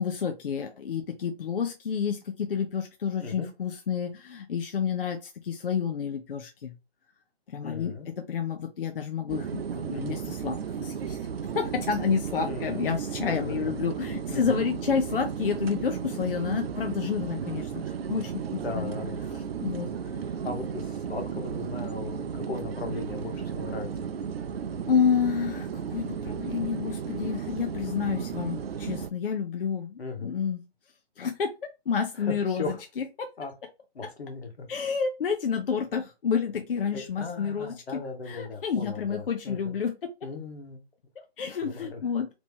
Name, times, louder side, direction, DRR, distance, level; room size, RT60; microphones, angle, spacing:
voice 1, 0.0-6.7 7.5-11.2 11.5-17.8 18.1-18.9 19.3-19.9 24.9-30.6 31.2-31.5 31.9-33.3 34.7-37.7 38.3-39.9 41.4-42.3, left 6 dB, 60° left, 5 dB, 0.6 m, -29 dB
voice 2, 3.2-3.5 7.6-8.1 9.9-10.2 12.4-12.9 13.2-13.7 14.3-14.6 18.6-19.2 20.4-23.9 30.0-30.3 32.2-32.8 33.4-33.5 33.9-34.7 36.9-39.7 40.2-40.8 41.6-42.0, left 4 dB, 75° left, 4 dB, 1.3 m, -37 dB
sound 1, 9.3-29.1, right 7 dB, 65° right, 0.5 m, -34 dB
3.0 x 2.8 x 3.5 m, 0.27 s
hypercardioid pair, 160°, 32 cm